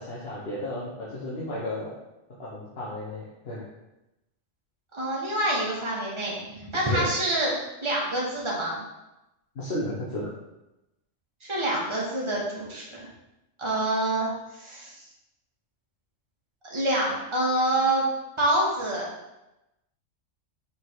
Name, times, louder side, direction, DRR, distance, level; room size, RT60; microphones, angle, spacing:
voice 1, 0.0-1.9 2.4-3.6 6.9-7.1 9.5-10.3, left 1 dB, 55° left, -7 dB, 1.4 m, -33 dB
voice 2, 4.9-6.3 6.6-7.5 7.8-8.8 11.4-13.1 13.6-14.3 14.6-15.0 16.6-18.0 18.4-19.1, right 1 dB, 25° right, -5 dB, 1.6 m, -26 dB
6.1 x 3.9 x 4.6 m, 0.97 s
omnidirectional pair, 1.3 m